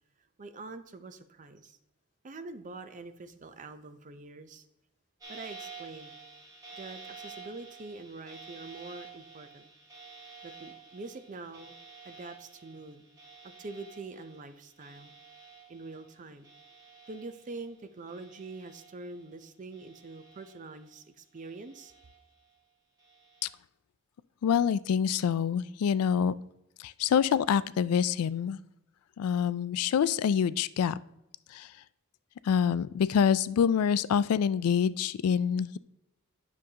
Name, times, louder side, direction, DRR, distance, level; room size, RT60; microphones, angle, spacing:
voice 1, 0.4-1.8 2.2-4.7 5.3-6.2 6.7-9.7 10.4-11.7 12.0-13.1 13.4-15.1 15.7-16.5 17.1-21.9, right 3 dB, 35° right, 10 dB, 0.5 m, -45 dB
sound 1, 5.2-17.8 18.1-19.3 19.7-20.9 21.3-22.4 23.0-23.5, right 4 dB, 20° right, 2.2 m, -51 dB
voice 2, 24.4-26.3 26.8-28.6 29.2-31.0 31.5-31.7 32.4-35.8, left 7 dB, 85° left, 17 dB, 0.3 m, -26 dB
10.0 x 6.4 x 2.8 m, 0.88 s
head